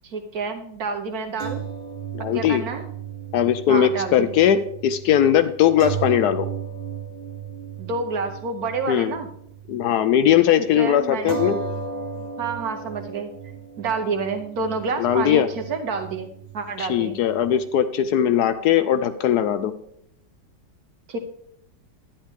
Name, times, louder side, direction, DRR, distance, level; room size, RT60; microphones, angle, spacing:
voice 1, 0.0-1.6 2.3-2.8 3.7-4.3 7.8-9.3 10.7-11.4 12.4-16.3 16.5-17.2 21.1-21.2, right 4 dB, 60° right, 5 dB, 1.2 m, -29 dB
sound 1, 1.4-9.9 10.2-10.4 11.3-17.8, right 6 dB, 40° right, 0.9 m, -35 dB
voice 2, 2.1-2.6 3.3-6.5 8.9-9.1 9.7-11.6 15.0-15.5 16.8-19.7, left 10 dB, 70° left, 11 dB, 1.0 m, -19 dB
10.5 x 9.9 x 3.5 m, 0.71 s
omnidirectional pair, 2.0 m